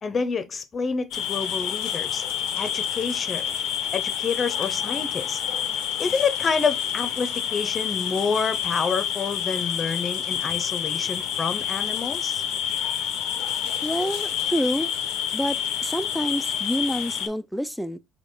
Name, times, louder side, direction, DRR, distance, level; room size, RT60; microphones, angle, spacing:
voice 1, 0.0-2.2 2.6-3.4 3.9-5.4 6.0-12.4, left 5 dB, 40° left, 0.7 m, -28 dB
sound 1, 1.1-17.3, left 9 dB, 75° left, 0.6 m, -28 dB
voice 2, 13.8-14.9 15.3-18.0, equal, ahead, 0.5 m, -28 dB
3.5 x 3.0 x 4.1 m
supercardioid pair, 65°, 0 cm